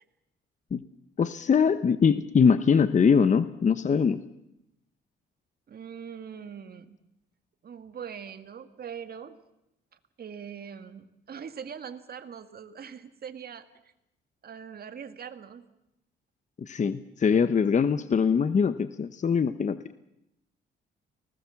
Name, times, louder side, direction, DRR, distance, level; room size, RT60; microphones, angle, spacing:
voice 1, 1.2-4.2 16.6-19.8, left 6 dB, 40° left, 13 dB, 1.0 m, -22 dB
voice 2, 5.7-7.0 7.6-9.4 10.2-13.7 14.4-15.7, right 7 dB, 50° right, 10 dB, 2.1 m, -42 dB
29.5 x 19.5 x 7.2 m, 0.85 s
cardioid pair, 90°, 20 cm